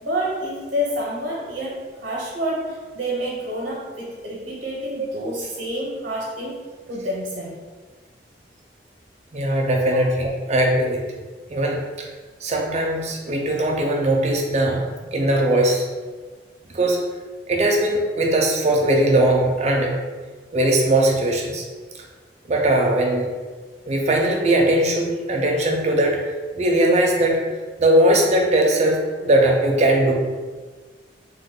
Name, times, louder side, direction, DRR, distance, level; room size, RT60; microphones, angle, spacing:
voice 1, 0.0-6.6 6.9-7.6 9.9-10.1, equal, 75° right, -3 dB, 0.7 m, -28 dB
voice 2, 9.3-11.0 11.5-12.1 12.4-15.9 16.7-17.0 17.5-20.0 20.5-21.6 22.4-23.3 23.9-26.2 26.6-27.4 27.8-30.1, right 1 dB, 40° right, 0 dB, 0.5 m, -19 dB
3.1 x 2.1 x 3.6 m, 1.4 s
head